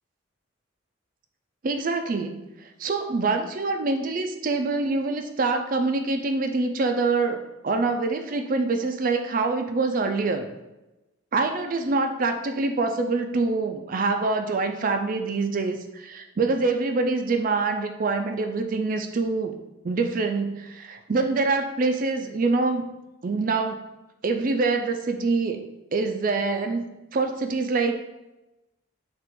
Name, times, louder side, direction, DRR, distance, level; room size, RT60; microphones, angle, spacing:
voice 1, 1.6-10.5 11.3-19.5 19.8-22.9 23.2-23.8 24.2-25.6 25.9-26.8 27.1-27.9, right 3 dB, 45° right, 6 dB, 0.4 m, -25 dB
5.7 x 2.5 x 3.7 m, 0.99 s
head